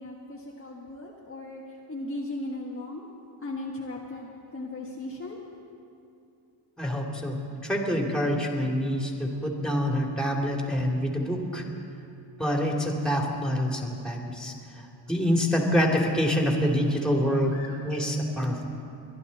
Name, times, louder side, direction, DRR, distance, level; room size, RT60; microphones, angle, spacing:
voice 1, 0.0-3.1 3.4-5.4 17.5-17.8, left 2 dB, 25° left, -3 dB, 1.5 m, -37 dB
voice 2, 6.8-7.4 7.6-11.6 12.4-17.5 17.8-18.6, equal, ahead, 0 dB, 2.9 m, -26 dB
22.5 x 11.5 x 4.2 m, 2.6 s
cardioid pair, 65°, 47 cm